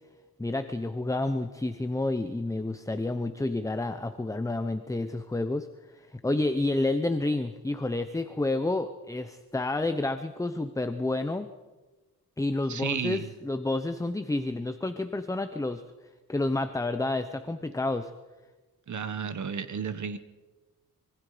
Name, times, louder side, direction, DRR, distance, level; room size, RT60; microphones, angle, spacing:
voice 1, 0.4-5.7 5.9-11.5 12.4-15.8 16.3-18.1, left 2 dB, 10° left, 9 dB, 0.8 m, -29 dB
voice 2, 12.7-13.3 18.9-20.2, right 6 dB, 55° right, 12 dB, 1.5 m, -32 dB
25.5 x 24.0 x 5.1 m, 1.2 s
wide cardioid pair, 155°, 36 cm